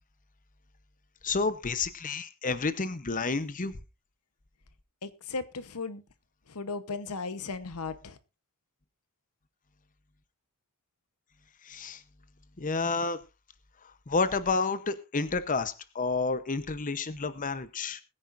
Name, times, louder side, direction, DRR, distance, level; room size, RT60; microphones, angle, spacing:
voice 1, 1.2-3.7 11.6-12.0 12.6-13.2 14.1-18.0, left 4 dB, 35° left, 13 dB, 0.9 m, -30 dB
voice 2, 5.0-6.0 6.5-8.2, left 4 dB, 80° left, 13 dB, 1.0 m, -36 dB
21.0 x 10.0 x 2.6 m, 0.25 s
head